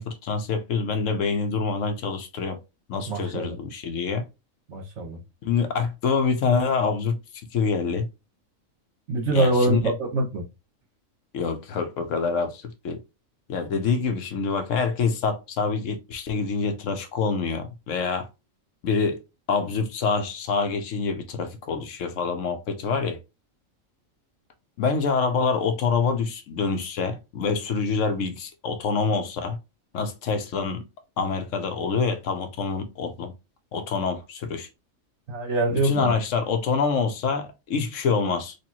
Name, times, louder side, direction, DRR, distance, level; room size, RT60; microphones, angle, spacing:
voice 1, 0.0-2.6 2.9-4.2 5.4-7.2 7.5-8.1 9.3-9.9 11.3-13.0 13.5-18.3 18.8-19.2 19.5-23.2 24.8-29.6 29.9-30.8 31.2-33.3 33.7-34.7 35.7-38.6, left 5 dB, 70° left, 1.0 m, -26 dB
voice 2, 3.1-3.5 4.7-5.2 9.1-10.5 35.3-36.1, right 2 dB, 60° right, 1.4 m, -24 dB
4.2 x 2.6 x 2.8 m
omnidirectional pair, 1.4 m